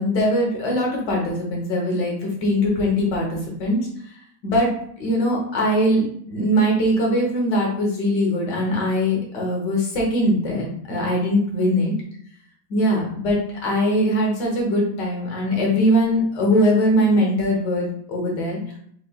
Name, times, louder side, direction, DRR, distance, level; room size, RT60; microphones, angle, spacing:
voice 1, 0.0-3.9 4.4-4.7 5.0-11.9 12.7-18.6, equal, 70° left, -1 dB, 1.6 m, -21 dB
4.1 x 3.1 x 2.3 m, 0.65 s
omnidirectional pair, 1.9 m